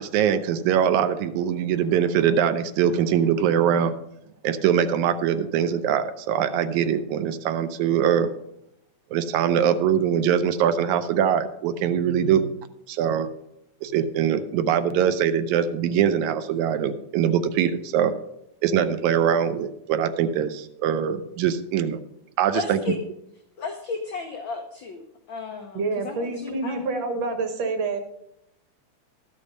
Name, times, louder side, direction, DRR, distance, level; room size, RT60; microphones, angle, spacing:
voice 1, 0.0-4.0 4.4-8.3 9.1-12.5 12.9-13.3 13.8-18.1 18.6-22.0 22.4-22.8, right 8 dB, 80° right, 9 dB, 2.1 m, -22 dB
voice 2, 22.5-23.0 23.6-26.8, left 4 dB, 90° left, 4 dB, 1.0 m, -34 dB
voice 3, 25.7-28.0, right 3 dB, 65° right, 6 dB, 2.2 m, -27 dB
13.0 x 6.7 x 5.3 m, 0.79 s
omnidirectional pair, 3.3 m